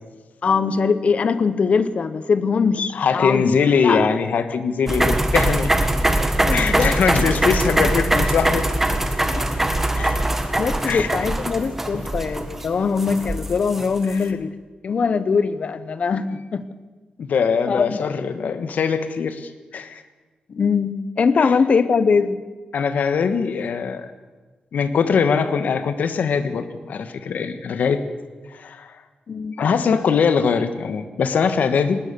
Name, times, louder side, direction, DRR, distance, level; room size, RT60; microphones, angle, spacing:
voice 1, 0.4-3.5 3.8-4.1 6.4-7.3 9.3-9.4 10.0-14.5 14.8-16.7 17.7-18.0 20.5-22.5 29.3-29.6, left 5 dB, 50° left, 14 dB, 0.9 m, -22 dB
voice 2, 2.9-5.7 6.5-8.7 10.8-11.1 14.1-14.3 17.2-20.0 21.4-21.5 22.7-24.1 24.7-28.0 28.5-28.9 29.6-32.0, left 6 dB, 85° left, 10 dB, 1.4 m, -21 dB
sound 1, 4.9-14.1, right 1 dB, 10° right, 1.6 m, -22 dB
19.5 x 19.0 x 7.0 m, 1.3 s
wide cardioid pair, 155°, 3 cm